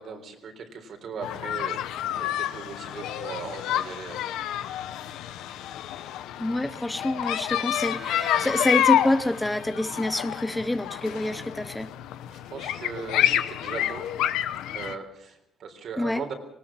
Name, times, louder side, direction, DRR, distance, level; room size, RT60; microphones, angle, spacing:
voice 1, 0.0-1.8 2.2-4.2 12.3-14.1 14.7-16.3, right 5 dB, 65° right, 5 dB, 3.8 m, -38 dB
sound 1, 1.2-15.0, left 12 dB, 90° left, 0.9 m, -29 dB
voice 2, 6.4-11.9 16.0-16.2, left 1 dB, 10° left, 12 dB, 1.0 m, -27 dB
sound 2, 7.6-10.8, right 1 dB, 15° right, 1.9 m, -45 dB
19.0 x 18.5 x 7.4 m, 0.79 s
cardioid pair, 90°, 0 cm